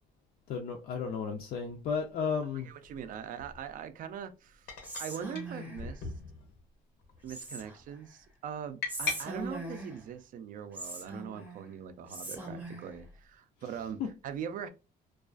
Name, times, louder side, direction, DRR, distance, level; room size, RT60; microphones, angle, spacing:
voice 1, 0.5-2.7, left 5 dB, 60° left, 0.4 m, -33 dB
sound 1, 1.6-1.7 3.4-3.6 4.7-5.1 5.3-5.5 5.7-6.6 7.0-7.4 8.8-9.2, left 4 dB, 75° left, 0.8 m, -38 dB
voice 2, 2.6-6.1 7.2-14.7, right 8 dB, 55° right, 0.4 m, -42 dB
Whispering, 4.8-5.9 7.3-8.0 8.9-10.1 10.7-11.7 12.1-12.9, right 1 dB, 10° right, 0.6 m, -41 dB
2.3 x 2.3 x 2.3 m
cardioid pair, 110°, 17 cm